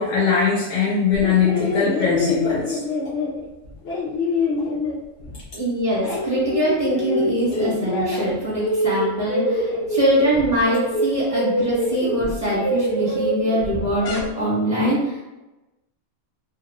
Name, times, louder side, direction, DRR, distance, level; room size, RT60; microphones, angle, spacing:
voice 1, 0.0-2.8, left 6 dB, 90° left, -5 dB, 1.1 m, -20 dB
sound 1, 1.1-5.5 5.8-8.3 8.6-14.5, left 1 dB, 60° left, 0.8 m, -25 dB
voice 2, 5.5-15.2, equal, 15° left, -8 dB, 0.8 m, -23 dB
2.6 x 2.5 x 2.9 m, 1.0 s
omnidirectional pair, 1.4 m